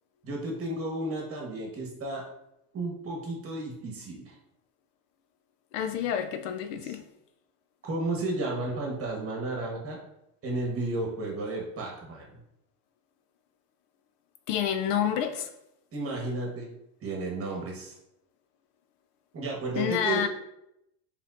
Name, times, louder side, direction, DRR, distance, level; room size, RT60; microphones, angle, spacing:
voice 1, 0.2-2.2 2.7-4.3 6.8-7.0 7.8-10.0 10.4-12.4 15.9-16.7 17.0-18.0 19.3-20.2, right 2 dB, 30° right, -1 dB, 1.2 m, -33 dB
voice 2, 5.7-7.0 14.5-15.5 19.8-20.3, left 9 dB, 70° left, 8 dB, 0.6 m, -28 dB
4.2 x 3.6 x 2.5 m, 0.82 s
supercardioid pair, 125°, 48 cm